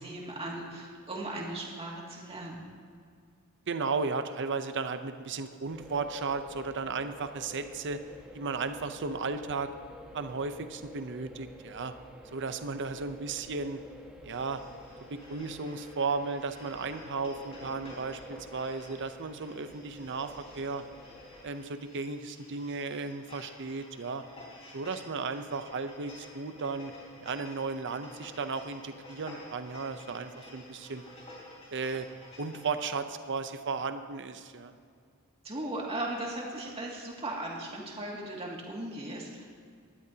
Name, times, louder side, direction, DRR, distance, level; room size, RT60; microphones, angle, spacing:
voice 1, 0.0-2.6 35.4-39.5, right 1 dB, 30° right, -2 dB, 2.3 m, -37 dB
voice 2, 3.7-8.0 8.3-9.7 10.1-11.9 12.3-13.8 14.2-14.6 15.1-20.8 21.4-24.2 24.7-26.9 27.2-31.0 31.7-32.1 32.4-34.7, right 4 dB, 55° right, 9 dB, 0.7 m, -35 dB
sound 1, 5.6-21.5, equal, 5° right, 1.2 m, -51 dB
sound 2, 14.3-33.0, left 1 dB, 30° left, 3.8 m, -51 dB
19.0 x 12.5 x 2.8 m, 2.2 s
head